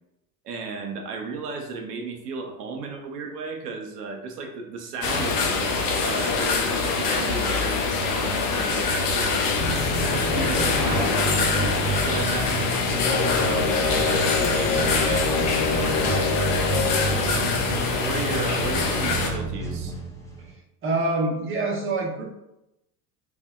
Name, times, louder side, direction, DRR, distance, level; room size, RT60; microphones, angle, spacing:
voice 1, 0.4-9.4 10.1-12.6 13.3-16.3 17.1-17.6 18.0-19.9, right 4 dB, 85° right, 4 dB, 0.6 m, -34 dB
sound 1, 5.0-19.3, left 4 dB, 80° left, 0.7 m, -24 dB
sound 2, 9.6-20.5, right 2 dB, 5° left, 0.5 m, -30 dB
sound 3, 13.0-17.2, left 5 dB, 65° left, 1.1 m, -27 dB
voice 2, 20.8-22.2, right 2 dB, 25° right, 0 dB, 0.8 m, -26 dB
3.3 x 2.0 x 2.3 m, 0.87 s
hypercardioid pair, 80°, 46 cm